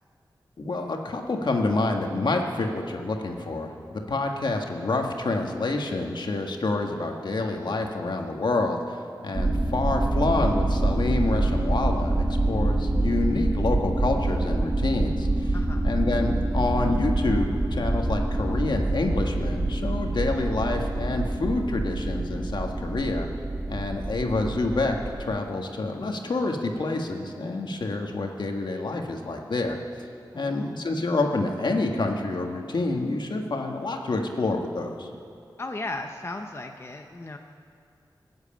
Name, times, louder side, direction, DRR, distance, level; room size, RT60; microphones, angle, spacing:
voice 1, 0.6-8.8 9.2-15.5 15.8-23.3 23.7-29.8 30.3-35.1, left 2 dB, 70° left, 3 dB, 1.6 m, -28 dB
sound 1, 9.3-25.2, right 2 dB, 35° right, 1.3 m, -26 dB
voice 2, 15.5-15.9 30.3-30.7 35.6-37.4, left 2 dB, 35° left, 4 dB, 0.8 m, -36 dB
20.0 x 8.0 x 8.9 m, 2.4 s
wide cardioid pair, 85°, 8 cm